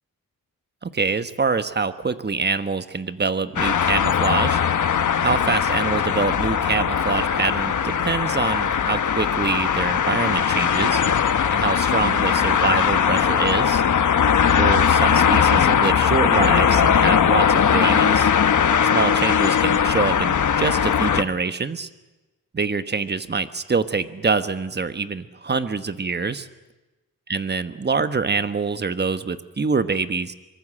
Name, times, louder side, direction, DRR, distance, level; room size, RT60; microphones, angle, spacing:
voice 1, 0.8-4.6 5.2-11.0 11.5-13.8 14.6-18.3 18.9-21.9 22.5-26.5 27.3-30.3, right 4 dB, 30° right, 11 dB, 1.2 m, -25 dB
sound 1, 3.6-21.2, left 7 dB, 60° left, 1.1 m, -19 dB
25.0 x 23.0 x 7.6 m, 1.1 s
wide cardioid pair, 120°, 33 cm